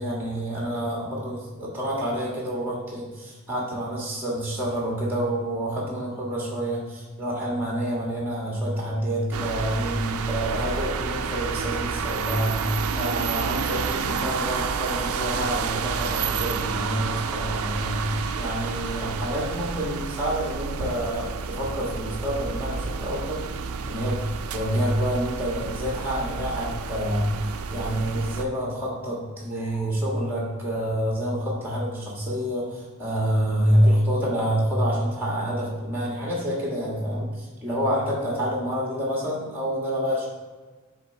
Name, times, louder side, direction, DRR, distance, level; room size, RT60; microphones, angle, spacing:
voice 1, 0.0-24.2 24.5-40.3, equal, 10° right, -3 dB, 1.5 m, -27 dB
sound 1, 9.3-28.4, right 5 dB, 85° right, 0.4 m, -30 dB
7.3 x 3.6 x 4.4 m, 1.3 s
head